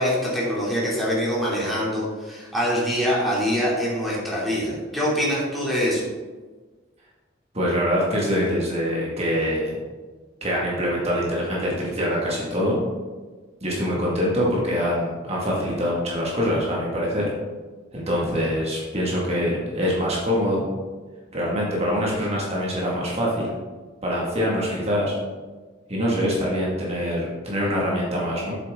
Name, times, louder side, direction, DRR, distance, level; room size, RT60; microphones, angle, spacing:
voice 1, 0.0-6.1, equal, ahead, -7 dB, 2.8 m, -24 dB
voice 2, 7.5-9.8 10.4-12.8 13.6-17.3 17.9-20.7 21.3-23.5 24.0-25.1 25.9-28.5, equal, 35° right, -4 dB, 2.0 m, -24 dB
8.4 x 7.4 x 3.8 m, 1.3 s
head